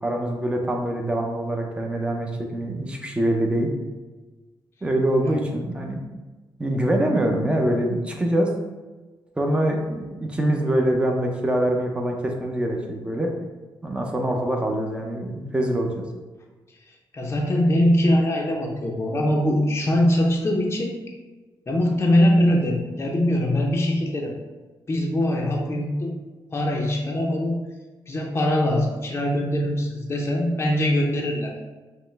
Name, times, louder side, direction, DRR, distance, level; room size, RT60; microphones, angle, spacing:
voice 1, 0.0-3.7 4.8-6.0 6.6-8.5 9.4-13.3 13.8-16.0, right 1 dB, 15° right, 2 dB, 0.6 m, -24 dB
voice 2, 17.1-21.0 21.7-24.3 24.9-26.2 26.5-27.6 28.1-31.5, left 1 dB, 30° left, -1 dB, 0.6 m, -22 dB
5.4 x 2.1 x 3.2 m, 1.2 s
cardioid pair, 105°, 8 cm